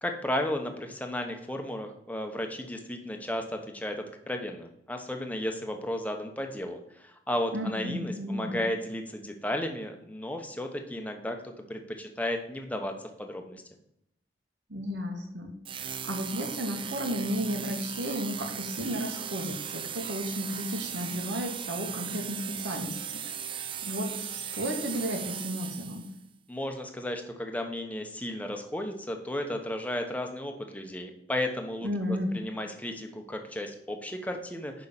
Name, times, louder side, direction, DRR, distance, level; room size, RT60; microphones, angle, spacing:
voice 1, 0.0-4.0 4.3-12.9 13.2-13.6 26.5-34.9, left 1 dB, 10° left, 4 dB, 1.0 m, -34 dB
voice 2, 7.5-8.6 14.7-23.2 23.5-26.1 31.8-32.4, equal, 75° right, 2 dB, 1.9 m, -33 dB
sound 1, 15.6-26.2, right 8 dB, 30° right, 0.4 m, -37 dB
6.7 x 5.5 x 7.1 m, 0.79 s
head